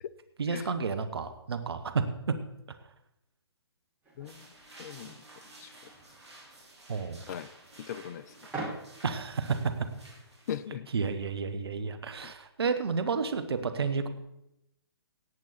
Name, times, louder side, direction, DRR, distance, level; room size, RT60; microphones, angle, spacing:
voice 1, 0.4-2.0 6.9-7.2 9.0-9.7 10.9-14.1, right 5 dB, 65° right, 8 dB, 1.4 m, -31 dB
sound 1, 4.0-9.4, right 2 dB, 10° right, 5.5 m, -45 dB
voice 2, 4.2-4.5 4.8-5.2 5.6-5.7 7.3-7.5 7.8-8.3 10.5-10.9 12.2-12.3, left 9 dB, 40° left, 15 dB, 0.5 m, -39 dB
sound 2, 4.2-10.6, right 2 dB, 85° right, 4.6 m, -53 dB
18.0 x 8.2 x 4.3 m, 0.85 s
figure-of-eight pair, 130°, 14 cm